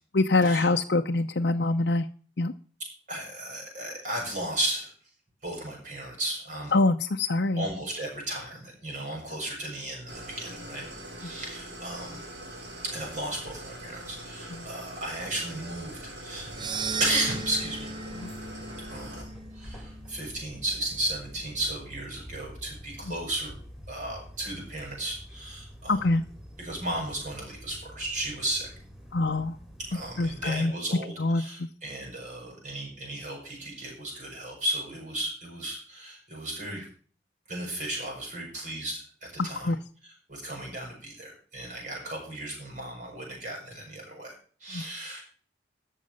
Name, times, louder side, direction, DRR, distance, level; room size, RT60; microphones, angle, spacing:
voice 1, 0.1-2.0 2.4-2.5 6.7-7.7 14.5-14.7 18.2-18.3 25.9-26.2 29.1-29.6 30.2-30.7 31.2-31.4 39.4-39.8 44.7-44.8, left 2 dB, 70° left, 4 dB, 0.7 m, -24 dB
voice 2, 3.1-4.9 5.4-6.7 7.6-10.9 11.2-12.3 12.8-16.5 17.0-17.9 18.9-23.6 23.9-26.0 26.6-28.7 29.9-36.9 37.5-39.0 39.3-39.7 40.0-44.3 44.6-45.2, right 1 dB, 45° right, 0 dB, 7.2 m, -34 dB
Idling, 10.1-19.2, right 1 dB, 75° right, 4.6 m, -43 dB
sound 1, 16.4-30.6, equal, 5° right, 3.3 m, -47 dB
sound 2, 16.4-20.8, right 4 dB, 25° right, 0.5 m, -37 dB
14.0 x 6.6 x 6.5 m, 0.43 s
head